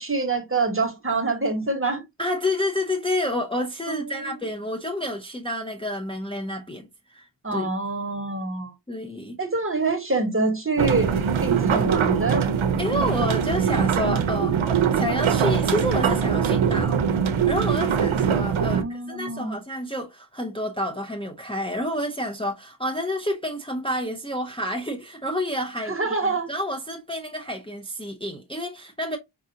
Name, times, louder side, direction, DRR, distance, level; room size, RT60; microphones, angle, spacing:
voice 1, 0.0-2.0 3.9-4.4 7.4-8.7 9.4-12.5 18.6-19.6 25.8-26.5, right 3 dB, 25° right, 1.2 m, -26 dB
voice 2, 2.2-7.7 8.9-9.4 12.8-17.0 17.5-29.2, left 1 dB, 10° left, 0.6 m, -29 dB
sound 1, 10.8-18.8, right 7 dB, 75° right, 0.7 m, -22 dB
5.3 x 2.5 x 2.7 m
wide cardioid pair, 60°, 49 cm